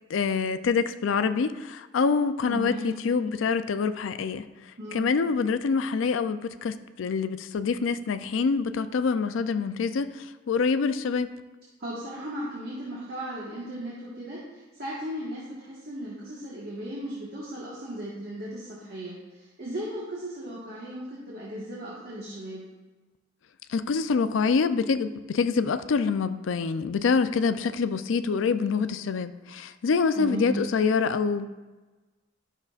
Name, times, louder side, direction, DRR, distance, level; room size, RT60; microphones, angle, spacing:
voice 1, 0.1-4.5 4.9-11.3 23.7-31.5, left 5 dB, 75° left, 11 dB, 0.4 m, -26 dB
voice 2, 2.5-2.9 4.8-5.0 11.8-22.6 30.1-30.6, right 1 dB, 55° right, -6 dB, 1.5 m, -36 dB
12.0 x 6.3 x 2.4 m, 1.2 s
head